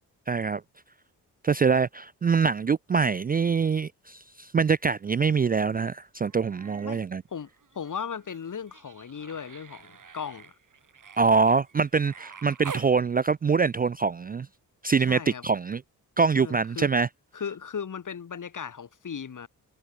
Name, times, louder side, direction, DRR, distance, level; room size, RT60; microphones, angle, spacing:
voice 1, 0.3-0.6 1.4-7.2 11.2-14.5 14.8-15.8 16.2-17.1, right 5 dB, 25° right, 0.4 m, -24 dB
Human voice, 6.3-7.0 7.3-12.9 14.5-14.6, right 6 dB, 55° right, 6.4 m, -46 dB
voice 2, 7.7-10.5 15.1-15.4 16.4-16.9 17.3-19.5, left 7 dB, 50° left, 2.5 m, -36 dB
cardioid pair, 60°, 38 cm